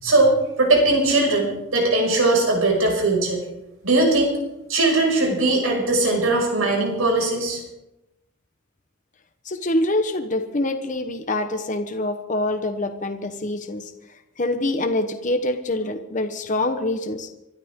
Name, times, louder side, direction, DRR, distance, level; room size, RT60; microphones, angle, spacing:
voice 1, 0.0-3.4 3.8-4.3 4.7-7.6, right 2 dB, 85° right, 0 dB, 6.0 m, -20 dB
voice 2, 9.4-13.9 14.4-17.3, left 1 dB, 35° left, 7 dB, 1.0 m, -25 dB
25.0 x 12.5 x 3.7 m, 0.91 s
head